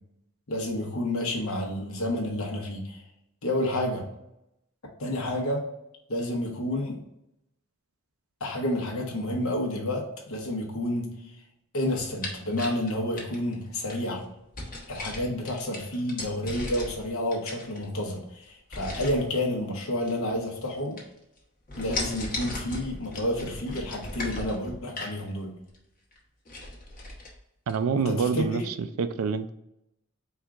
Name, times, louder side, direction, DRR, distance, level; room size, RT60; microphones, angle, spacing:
voice 1, 0.5-3.0 3.4-4.0 5.0-5.6 6.1-7.0 8.4-11.1 11.7-14.2 14.9-21.0 21.8-25.5 27.9-28.6, left 1 dB, 85° left, 0 dB, 1.0 m, -30 dB
sound 1, 12.0-14.0 14.5-17.1 17.3-18.1 18.7-19.3 20.0-20.7 21.0-21.4 21.7-25.2 25.7-25.8 26.1-26.2 26.5-27.3 27.7-27.8, left 2 dB, 40° left, 1.0 m, -37 dB
voice 2, 27.7-29.5, right 5 dB, 85° right, 11 dB, 0.4 m, -27 dB
4.4 x 2.4 x 3.6 m, 0.85 s
head